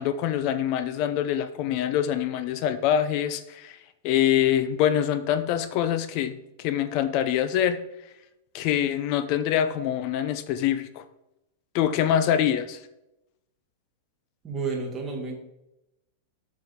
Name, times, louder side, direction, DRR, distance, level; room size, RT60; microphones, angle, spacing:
voice 1, 0.0-3.8 4.0-7.8 8.5-11.0 11.7-12.8, left 10 dB, 40° left, 12 dB, 0.6 m, -25 dB
voice 2, 14.4-15.4, right 4 dB, 15° right, 0 dB, 1.8 m, -31 dB
8.0 x 6.4 x 3.7 m, 0.88 s
supercardioid pair, 165°, 0 cm